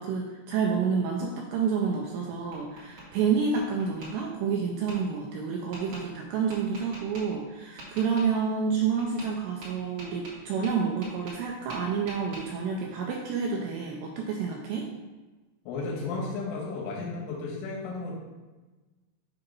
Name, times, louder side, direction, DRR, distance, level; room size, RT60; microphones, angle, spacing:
voice 1, 0.0-14.9, right 6 dB, 90° right, 0 dB, 2.4 m, -29 dB
Tap, 2.0-3.1 3.5-4.1 4.9-5.0 5.7-6.0 6.5-7.2 7.8-8.3 9.0-9.3 9.6-11.4 11.7-12.4, right 1 dB, 60° right, 1.6 m, -44 dB
voice 2, 15.7-18.1, left 3 dB, 85° left, -3 dB, 3.7 m, -33 dB
7.9 x 2.8 x 5.3 m, 1.2 s
omnidirectional pair, 5.6 m